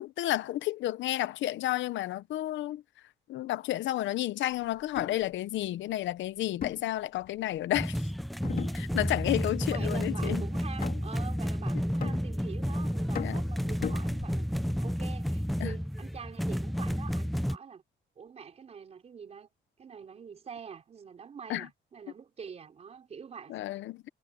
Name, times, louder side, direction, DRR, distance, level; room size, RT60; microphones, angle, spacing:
voice 1, 0.0-2.8 3.3-8.0 8.7-10.4 13.2-13.4 15.6-15.7 21.5-21.7 23.5-24.1, left 14 dB, 80° left, 0.7 m, -31 dB
Drumming water jug, 4.8-5.3 6.6-7.6 8.4-9.2 9.6-9.9 10.8-11.3 12.0-12.7 13.2-14.6, left 8 dB, 50° left, 2.5 m, -39 dB
sound 1, 7.7-17.6, equal, ahead, 0.3 m, -31 dB
voice 2, 9.6-17.8 18.2-19.5 19.8-23.5, right 6 dB, 35° right, 4.1 m, -45 dB
cardioid pair, 170°, 19 cm